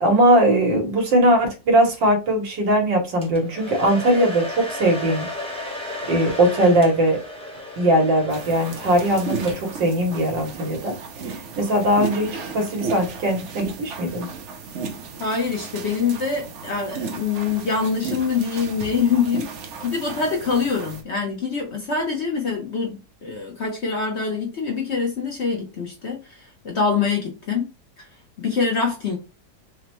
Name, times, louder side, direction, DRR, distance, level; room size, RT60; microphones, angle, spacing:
voice 1, 0.0-5.3 6.1-7.2 7.8-10.9 11.6-14.3, right 1 dB, 90° right, 1.8 m, -20 dB
Domestic sounds home sounds, 3.2-9.9, left 2 dB, 5° left, 0.6 m, -34 dB
sound 1, 8.3-21.0, right 5 dB, 60° right, 0.7 m, -34 dB
voice 2, 15.2-27.7 28.0-28.1 28.4-29.2, left 5 dB, 50° left, 0.8 m, -25 dB
5.9 x 2.1 x 3.0 m
omnidirectional pair, 1.9 m